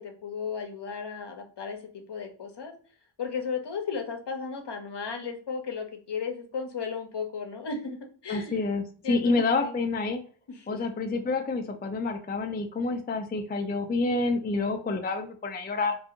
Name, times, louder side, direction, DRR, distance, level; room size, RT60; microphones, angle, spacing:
voice 1, 0.0-1.8 2.1-2.7 3.2-8.0 8.2-8.6 9.0-9.8 10.5-10.7, left 5 dB, 55° left, 4 dB, 0.7 m, -34 dB
voice 2, 8.3-10.2 10.7-16.0, left 3 dB, 20° left, 5 dB, 0.3 m, -28 dB
2.5 x 2.3 x 2.7 m, 0.43 s
cardioid pair, 50°, 49 cm